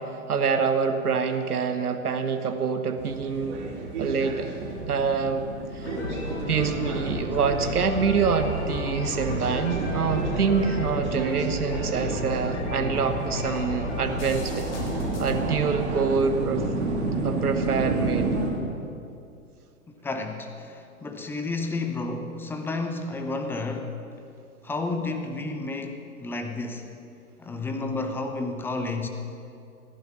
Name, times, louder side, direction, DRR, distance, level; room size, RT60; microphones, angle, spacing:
voice 1, 0.0-3.6 4.0-4.5 4.9-5.5 5.7-5.9 6.5-14.7 15.2-16.6 17.2-18.3, right 5 dB, 85° right, 8 dB, 1.2 m, -26 dB
sound 1, 3.0-18.5, right 3 dB, 50° right, 3.2 m, -31 dB
sound 2, 5.8-15.4, left 2 dB, 55° left, 3.4 m, -33 dB
voice 2, 20.0-23.9 24.6-26.9 27.4-29.1, left 3 dB, 5° left, 6 dB, 0.6 m, -31 dB
14.5 x 11.5 x 6.2 m, 2.5 s
hypercardioid pair, 120°, 44 cm